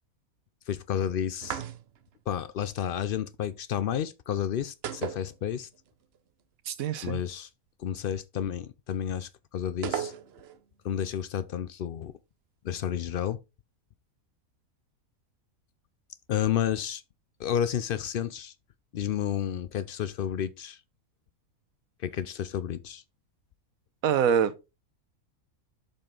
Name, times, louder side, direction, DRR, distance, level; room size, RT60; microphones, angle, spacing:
voice 1, 0.7-1.6 2.3-5.7 7.0-7.5 7.8-10.1 10.8-12.1 12.6-13.4 16.3-17.0 17.4-18.5 18.9-20.8 22.0-23.0, left 9 dB, 75° left, 0.5 m, -31 dB
sound 1, 1.4-2.1 4.8-5.9 6.2-6.3 9.8-10.6, right 9 dB, 55° right, 0.8 m, -35 dB
voice 2, 6.7-7.2 24.0-24.5, right 8 dB, 75° right, 1.2 m, -25 dB
7.1 x 5.5 x 3.8 m
omnidirectional pair, 1.5 m